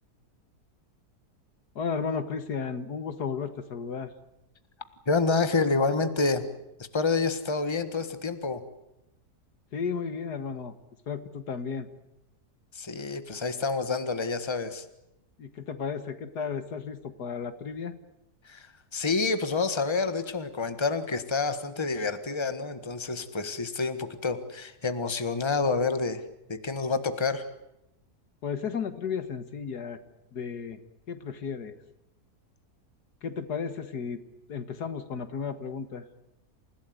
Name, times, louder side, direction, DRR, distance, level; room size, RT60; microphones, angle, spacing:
voice 1, 1.8-4.1 9.7-10.7 11.1-11.9 15.4-17.9 28.4-30.0 30.3-30.8 31.1-31.7 33.2-34.2 34.5-36.0, left 6 dB, 85° left, 10 dB, 2.1 m, -33 dB
voice 2, 5.1-6.4 6.9-8.6 12.7-14.8 18.4-18.7 18.9-26.2 26.5-27.4, left 4 dB, 20° left, 10 dB, 1.5 m, -28 dB
28.5 x 16.5 x 9.5 m, 0.89 s
omnidirectional pair, 1.7 m